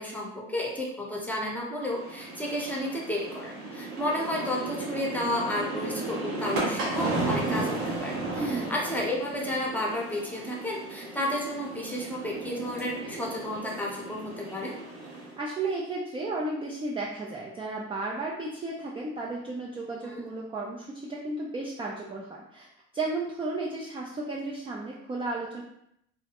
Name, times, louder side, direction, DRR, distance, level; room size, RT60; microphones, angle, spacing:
voice 1, 0.0-14.7 20.0-20.2, left 1 dB, 5° left, -3 dB, 0.7 m, -32 dB
sound 1, 1.9-15.4, right 2 dB, 85° right, 0.7 m, -34 dB
voice 2, 8.4-8.7 15.2-22.7 22.9-25.6, right 2 dB, 15° right, -3 dB, 0.3 m, -34 dB
2.2 x 2.0 x 2.8 m, 0.77 s
supercardioid pair, 65°, 34 cm